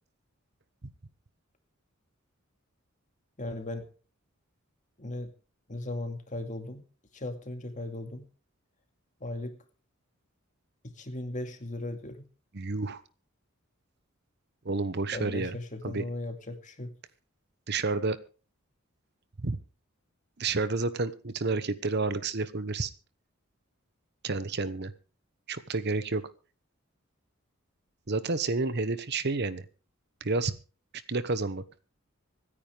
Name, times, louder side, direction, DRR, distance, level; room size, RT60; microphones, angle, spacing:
voice 1, 3.4-3.9 5.0-5.3 5.7-6.8 7.1-8.2 9.2-9.6 10.8-12.3 15.1-16.9, left 1 dB, 35° left, 6 dB, 2.2 m, -37 dB
voice 2, 12.5-13.0 14.6-15.5 15.8-16.0 17.7-18.2 19.4-19.6 20.4-22.9 24.2-24.9 25.5-26.2 28.1-29.6 30.2-30.5 31.1-31.6, right 3 dB, 55° right, 14 dB, 1.0 m, -30 dB
25.5 x 10.0 x 3.5 m, 0.37 s
head